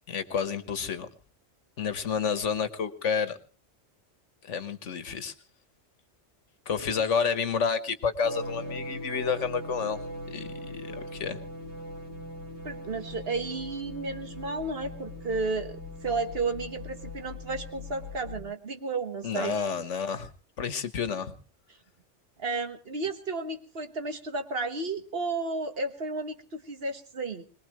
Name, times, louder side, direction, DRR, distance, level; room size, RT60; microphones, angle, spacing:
voice 1, 0.1-1.1 1.8-3.4 4.4-5.3 6.7-10.0 10.3-11.4 19.2-20.3 20.6-21.3, left 6 dB, 80° left, 12 dB, 1.6 m, -30 dB
sound 1, 8.2-18.4, left 1 dB, 70° right, 5.4 m, -40 dB
voice 2, 12.6-19.5 22.4-27.4, right 3 dB, 55° right, 7 dB, 1.6 m, -33 dB
22.0 x 20.5 x 3.1 m, 0.38 s
omnidirectional pair, 1.2 m